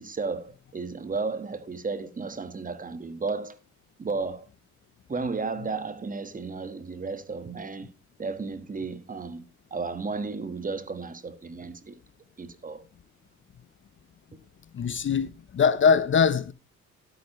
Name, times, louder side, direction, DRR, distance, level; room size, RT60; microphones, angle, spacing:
voice 1, 0.0-3.6 4.0-4.5 5.1-7.9 8.2-9.4 9.7-12.0 12.4-12.8 14.3-14.4, right 4 dB, 25° right, 1.4 m, -33 dB
voice 2, 14.7-16.5, left 6 dB, 40° left, 0.7 m, -22 dB
12.5 x 9.2 x 3.0 m
cardioid pair, 90°, 30 cm